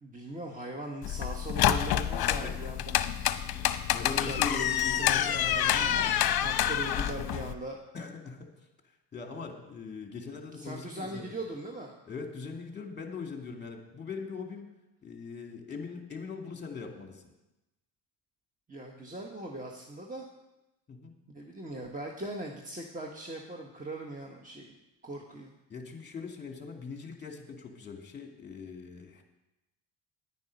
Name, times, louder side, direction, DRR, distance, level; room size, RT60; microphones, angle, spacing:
voice 1, 0.0-3.0 4.1-6.0 6.4-7.8 10.5-11.9 18.7-20.3 21.3-24.7 25.0-25.5, right 1 dB, 20° right, 0 dB, 1.3 m, -40 dB
sound 1, 1.0-7.5, left 11 dB, 55° left, 0.8 m, -28 dB
voice 2, 3.5-6.3 7.9-8.5 9.1-11.4 12.1-14.7 15.0-17.2 20.9-21.1 25.7-29.2, left 5 dB, 25° left, 3 dB, 2.3 m, -41 dB
10.0 x 9.4 x 5.4 m, 0.97 s
cardioid pair, 90°, 44 cm